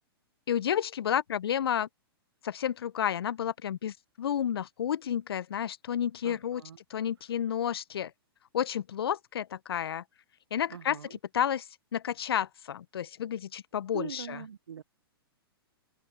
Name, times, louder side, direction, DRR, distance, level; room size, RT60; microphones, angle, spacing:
voice 1, 0.5-1.9 2.4-6.6 6.9-8.1 8.5-10.0 10.5-11.7 11.9-14.4, left 9 dB, 75° left, 0.6 m, -31 dB
voice 2, 6.2-6.8 10.7-11.1 13.9-14.8, right 8 dB, 80° right, 0.8 m, -42 dB
hypercardioid pair, 115°, 13 cm